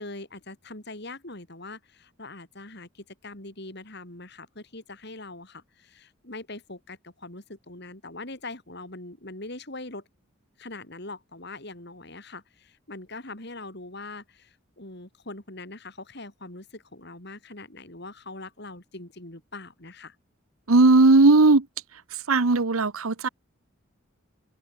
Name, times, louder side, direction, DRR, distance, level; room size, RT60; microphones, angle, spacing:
voice 1, 0.0-10.0 10.6-20.2, left 2 dB, 50° left, 3.9 m, -42 dB
voice 2, 20.7-21.6 22.3-23.3, right 3 dB, 90° right, 1.1 m, -17 dB
open air
head